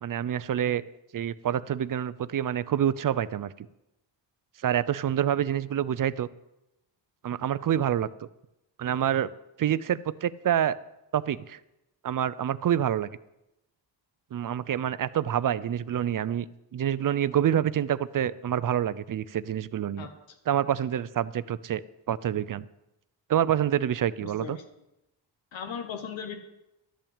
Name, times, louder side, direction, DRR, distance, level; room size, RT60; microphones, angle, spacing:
voice 1, 0.0-0.8 1.1-3.7 4.6-6.3 7.2-8.1 8.8-9.3 9.6-10.8 11.1-11.6 12.0-13.1 14.3-16.5 16.7-20.1 20.5-21.8 22.1-22.6 23.3-24.6, right 10 dB, 45° right, 17 dB, 0.5 m, -27 dB
voice 2, 24.2-24.6 25.5-26.3, left 7 dB, 80° left, 5 dB, 1.4 m, -37 dB
12.5 x 5.7 x 8.8 m, 0.90 s
wide cardioid pair, 125°, 45 cm